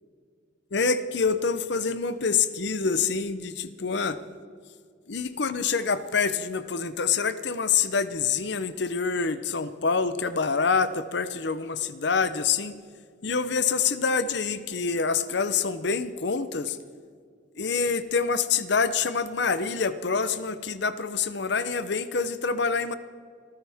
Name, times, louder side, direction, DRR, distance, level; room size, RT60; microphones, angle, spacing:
voice 1, 0.7-4.2 5.1-12.7 13.2-16.8 17.6-22.9, left 5 dB, 60° left, 13 dB, 0.7 m, -26 dB
25.0 x 14.5 x 3.5 m, 2.1 s
head